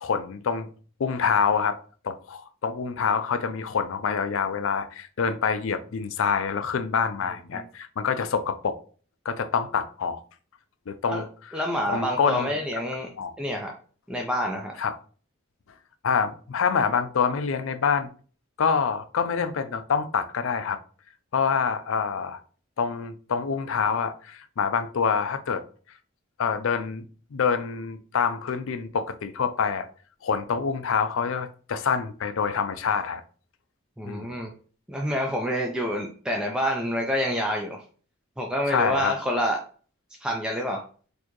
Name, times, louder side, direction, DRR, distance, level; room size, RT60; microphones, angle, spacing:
voice 1, 0.0-0.7 1.0-1.8 2.0-8.8 9.3-10.2 10.9-11.2 11.9-12.5 13.2-13.3 14.8-15.0 16.0-18.1 18.6-20.8 21.3-22.4 22.8-25.6 26.4-27.0 27.3-29.9 30.2-33.2 34.1-34.3 38.7-39.2, left 6 dB, 65° left, 0.4 m, -26 dB
voice 2, 11.5-13.1 13.4-13.7 14.1-14.7 34.0-34.5 34.9-37.8 38.4-39.6 40.2-40.8, equal, 5° right, 0.4 m, -27 dB
4.3 x 2.8 x 3.0 m
head